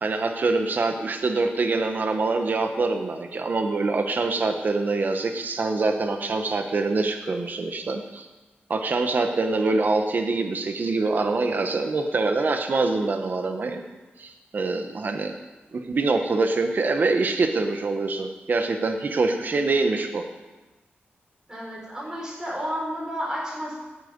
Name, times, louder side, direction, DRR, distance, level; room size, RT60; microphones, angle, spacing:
voice 1, 0.0-8.3 8.7-13.8 14.2-15.4 15.7-20.2, right 3 dB, 50° right, 5 dB, 1.2 m, -25 dB
voice 2, 21.5-23.8, equal, 15° right, -4 dB, 5.4 m, -31 dB
17.5 x 9.0 x 5.4 m, 1.1 s
wide cardioid pair, 140°, 4 cm